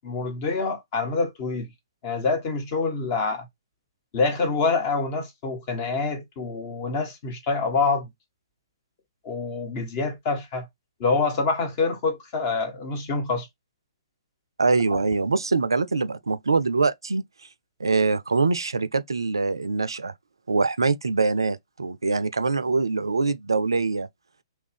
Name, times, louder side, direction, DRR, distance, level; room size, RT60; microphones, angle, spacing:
voice 1, 0.0-1.7 2.0-3.5 4.1-8.1 9.2-10.7 11.0-13.5 14.9-15.0, left 4 dB, 35° left, 1.2 m, -26 dB
voice 2, 14.6-17.2 17.8-20.1 20.5-24.1, right 4 dB, 70° right, 0.3 m, -23 dB
3.1 x 2.6 x 3.3 m
figure-of-eight pair, 120°, 2 cm